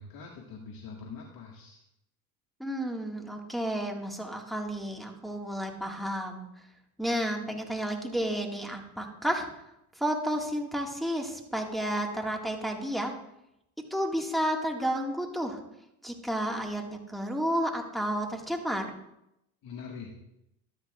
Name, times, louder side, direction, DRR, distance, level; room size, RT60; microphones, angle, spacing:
voice 1, 0.0-1.8 19.6-20.1, left 5 dB, 55° left, -1 dB, 1.7 m, -43 dB
voice 2, 2.6-6.5 7.0-9.5 10.0-13.1 13.9-15.6 16.0-18.9, equal, ahead, 2 dB, 1.8 m, -31 dB
13.0 x 9.6 x 2.4 m, 0.83 s
supercardioid pair, 85°, 43 cm